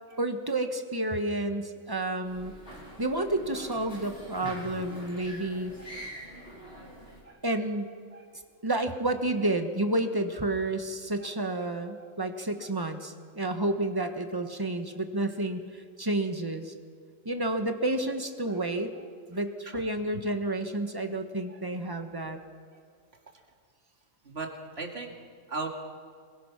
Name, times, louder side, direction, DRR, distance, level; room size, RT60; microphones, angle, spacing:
voice 1, 0.2-2.5 3.0-5.7 7.4-7.9 8.6-16.7 17.2-18.9 19.3-22.4, right 2 dB, 20° right, 6 dB, 1.4 m, -30 dB
sound 1, 2.2-7.2, equal, 60° left, 5.4 m, -44 dB
voice 2, 24.8-25.1 25.5-25.7, right 3 dB, 55° right, 2 dB, 2.6 m, -38 dB
25.5 x 21.5 x 6.0 m, 2.1 s
omnidirectional pair, 1.3 m